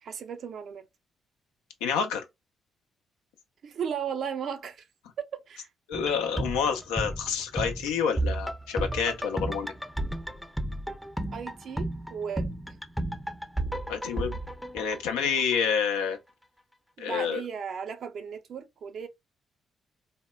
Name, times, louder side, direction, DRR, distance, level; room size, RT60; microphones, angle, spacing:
voice 1, 0.0-0.9 3.6-4.9 5.2-5.7 11.3-12.8 17.0-19.1, right 7 dB, 65° right, 0.5 m, -36 dB
voice 2, 1.8-2.2 5.9-9.7 13.9-14.4 14.7-16.2 17.0-17.4, left 6 dB, 85° left, 0.5 m, -28 dB
sound 1, 5.9-15.8 16.1-16.2, right 1 dB, ahead, 0.5 m, -33 dB
3.5 x 2.1 x 2.2 m
hypercardioid pair, 50°, 0 cm